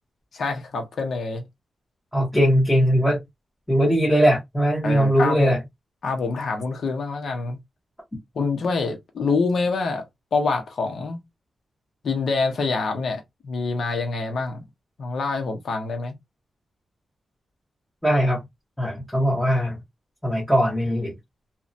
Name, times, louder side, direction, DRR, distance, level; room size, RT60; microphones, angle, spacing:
voice 1, 0.3-1.4 4.8-5.6 6.0-7.6 8.3-11.2 12.0-14.6 15.0-16.2, left 4 dB, 60° left, 0.7 m, -26 dB
voice 2, 2.1-3.2 3.7-5.6 18.0-18.4 18.8-19.8 20.2-21.1, equal, 5° left, 0.8 m, -20 dB
2.6 x 2.1 x 2.5 m
wide cardioid pair, 155°, 0 cm